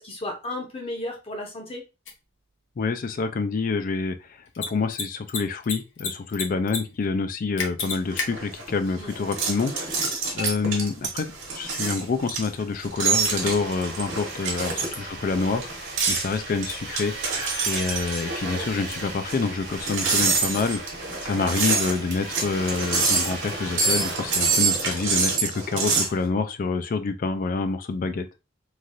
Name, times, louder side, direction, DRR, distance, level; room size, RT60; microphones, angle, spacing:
voice 1, 0.0-1.8 9.0-9.1 14.6-14.8, left 1 dB, 30° left, 1 dB, 0.8 m, -34 dB
Mechanisms, 2.0-2.1 4.5-4.7 4.9-5.0 5.3-6.1 6.3-6.8 7.0-7.1 7.6-8.2, left 5 dB, 75° left, 0.7 m, -28 dB
voice 2, 2.8-4.2 4.6-17.1 17.7-20.8 21.2-28.3, left 4 dB, 45° left, 10 dB, 0.4 m, -27 dB
sound 1, 7.8-26.1, right 4 dB, 80° right, 1.1 m, -27 dB
Domestic sounds home sounds, 12.8-25.4, right 2 dB, 55° right, 1.1 m, -38 dB
3.2 x 2.4 x 2.5 m, 0.28 s
head